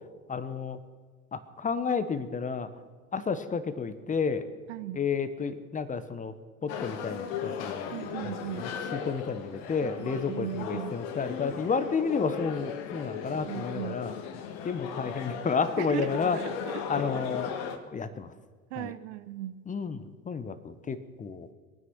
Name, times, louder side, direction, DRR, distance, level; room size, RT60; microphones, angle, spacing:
voice 1, 0.3-0.8 1.3-2.7 3.1-4.5 4.9-6.3 6.6-7.9 8.2-14.1 14.6-16.4 16.9-17.6 17.9-18.3 18.8-18.9 19.7-21.5, left 5 dB, 20° left, 12 dB, 1.1 m, -31 dB
voice 2, 4.7-5.0 7.9-8.7 10.0-11.0 13.2-14.0 15.8-17.1 18.7-19.6, right 13 dB, 55° right, 14 dB, 0.8 m, -38 dB
sound 1, 6.7-17.8, left 7 dB, 55° left, 1.7 m, -37 dB
23.0 x 9.7 x 6.2 m, 1.5 s
figure-of-eight pair, 75°, 42 cm